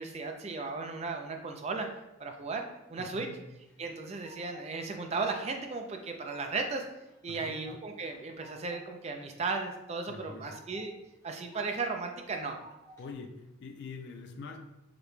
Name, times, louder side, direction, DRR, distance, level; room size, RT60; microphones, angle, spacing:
voice 1, 0.0-1.9 2.2-2.6 2.9-3.3 3.8-6.9 7.2-10.9 11.2-12.6, right 4 dB, 30° right, 4 dB, 0.4 m, -35 dB
voice 2, 3.0-3.4 7.3-7.6 10.1-10.7 13.0-14.6, left 4 dB, 55° left, 4 dB, 0.3 m, -45 dB
sound 1, 3.6-4.6 5.0-5.7 6.0-6.7 7.1-7.8 8.1-8.8 9.1-9.8 10.2-10.9 11.2-11.9 12.3-13.0, right 1 dB, 15° left, 1.0 m, -54 dB
4.8 x 2.2 x 3.1 m, 0.93 s
head